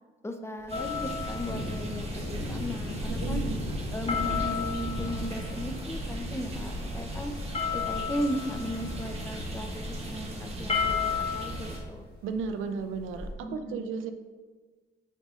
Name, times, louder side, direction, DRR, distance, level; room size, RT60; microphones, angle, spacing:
voice 1, 0.2-3.4 3.9-7.3 7.7-12.0 13.4-13.9, equal, 15° left, 6 dB, 0.7 m, -36 dB
Thunder, 0.6-13.3, left 1 dB, 55° left, 1.4 m, -39 dB
sound 1, 0.7-11.5, left 6 dB, 30° left, 1.1 m, -35 dB
sound 2, 0.7-11.8, right 1 dB, 30° right, 1.5 m, -38 dB
voice 2, 3.2-3.6 12.2-14.1, right 5 dB, 85° right, 8 dB, 0.6 m, -34 dB
9.0 x 5.2 x 2.5 m, 1.4 s
cardioid pair, 90°, 20 cm